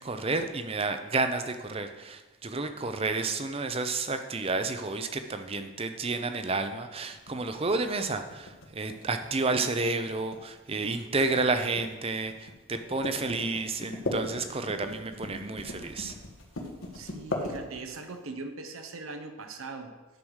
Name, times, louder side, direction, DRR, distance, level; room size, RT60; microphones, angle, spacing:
voice 1, 0.0-16.1, right 3 dB, 30° right, 8 dB, 0.6 m, -30 dB
sound 1, 7.1-18.1, left 1 dB, 75° left, 1.5 m, -38 dB
voice 2, 16.9-19.9, right 3 dB, 80° right, 7 dB, 0.9 m, -41 dB
10.5 x 4.8 x 6.4 m, 1.2 s
head